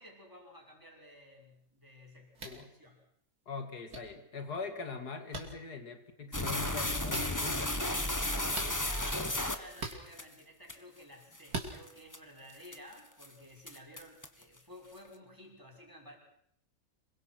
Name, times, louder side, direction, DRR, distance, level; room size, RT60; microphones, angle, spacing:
voice 1, 0.0-3.1 8.3-16.2, equal, 10° right, 0 dB, 6.5 m, -54 dB
sound 1, 2.4-2.6 3.9-4.0 5.3-5.5 7.1-7.3 8.5-8.7 9.8-10.0 11.5-11.7, right 3 dB, 75° right, 3.6 m, -39 dB
voice 2, 3.5-7.9, left 4 dB, 85° left, 7 dB, 2.9 m, -42 dB
sound 2, 6.3-10.2 10.7-10.8 11.3-11.5 11.9-12.2 12.6-12.9 13.2-13.3 13.7-14.4, left 1 dB, 10° left, 1.6 m, -33 dB
27.0 x 23.0 x 6.2 m, 0.71 s
omnidirectional pair, 1.6 m